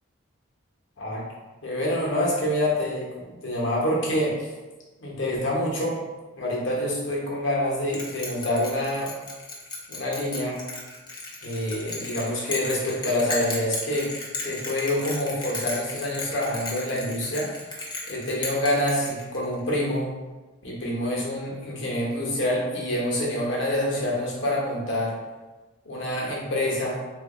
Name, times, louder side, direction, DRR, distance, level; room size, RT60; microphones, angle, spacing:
voice 1, 1.6-3.1 3.4-4.5 5.0-6.0 6.4-9.1 9.9-10.6 11.4-14.1 14.4-17.6 18.1-20.1 20.6-25.1 25.8-27.0, left 1 dB, 65° left, -4 dB, 1.0 m, -26 dB
Bell, 7.9-19.6, left 3 dB, 20° left, 0.6 m, -35 dB
3.4 x 2.5 x 3.7 m, 1.2 s
head